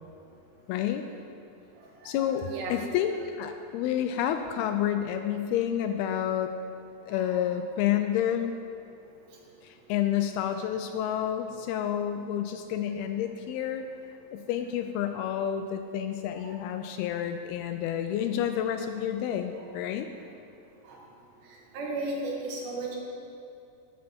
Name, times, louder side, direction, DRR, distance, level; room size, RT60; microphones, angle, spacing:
voice 1, 0.7-1.1 2.1-6.5 7.1-8.5 9.6-13.9 14.3-20.1, left 10 dB, 85° left, 7 dB, 2.3 m, -29 dB
voice 2, 2.0-2.8 7.1-7.5 16.4-16.6 20.9-21.0 21.7-23.0, right 2 dB, 90° right, -1 dB, 3.7 m, -35 dB
14.0 x 7.4 x 4.3 m, 2.7 s
omnidirectional pair, 4.8 m